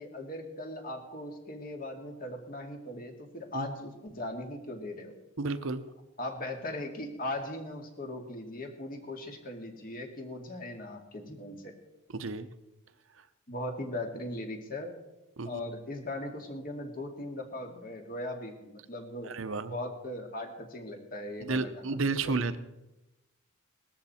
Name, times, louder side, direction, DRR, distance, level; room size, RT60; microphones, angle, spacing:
voice 1, 0.0-5.1 6.2-11.7 13.5-15.0 15.4-19.3 19.7-22.1, left 1 dB, 45° left, 3 dB, 2.3 m, -39 dB
voice 2, 5.4-5.8 12.1-12.5 15.4-15.6 19.2-19.7 21.4-22.6, right 3 dB, 70° right, 11 dB, 0.8 m, -32 dB
19.5 x 13.5 x 4.3 m, 0.98 s
head